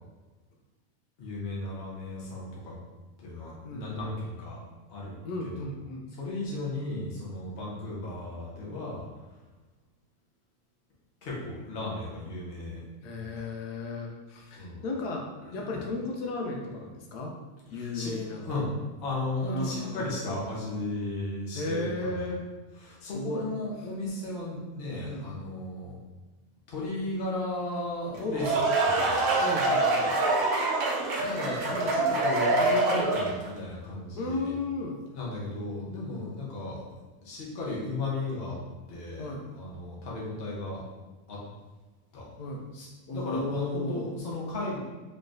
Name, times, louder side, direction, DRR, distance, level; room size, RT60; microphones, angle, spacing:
voice 1, 1.2-2.8 3.2-4.6 4.9-5.1 5.4-5.5 6.1-9.0 11.2-12.9 13.1-13.3 14.6-14.8 15.4-15.8 17.7-18.7 19.0-22.3 22.8-26.0 26.7-29.3 31.1-34.5 35.1-36.8 37.2-38.6 38.9-40.8 41.3-41.4 42.1-42.3 42.7-44.8, left 2 dB, 45° left, -5 dB, 1.0 m, -35 dB
voice 2, 3.6-4.1 5.2-6.0 13.0-15.3 15.5-17.3 17.7-18.6 19.4-20.1 21.5-22.4 23.0-23.4 25.0-25.3 28.2-28.3 29.4-30.1 34.1-34.9 39.2-39.4 42.4-42.6 43.1-44.1, left 2 dB, 85° left, 0 dB, 1.2 m, -34 dB
sound 1, 28.1-33.5, right 2 dB, 75° right, 1.2 m, -25 dB
3.9 x 3.2 x 2.6 m, 1.2 s
omnidirectional pair, 1.7 m